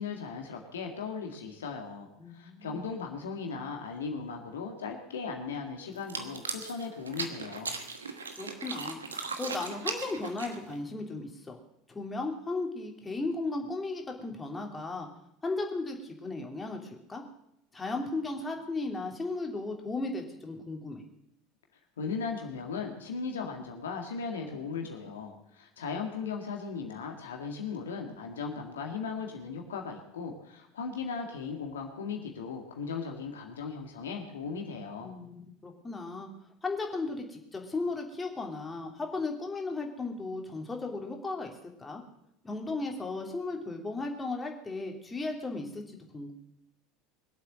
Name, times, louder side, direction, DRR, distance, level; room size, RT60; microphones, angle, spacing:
voice 1, 0.0-7.8 22.0-35.2, left 5 dB, 75° left, 2 dB, 2.0 m, -37 dB
voice 2, 2.2-2.8 8.4-11.6 11.9-15.1 15.4-17.2 17.7-21.0 35.0-36.3 36.6-41.5 41.8-42.0 42.4-46.3, left 3 dB, 15° left, 2 dB, 3.0 m, -36 dB
sound 1, 6.0-10.8, right 4 dB, 80° right, 1.4 m, -38 dB
22.0 x 8.2 x 7.6 m, 0.80 s
figure-of-eight pair, 75°, 0 cm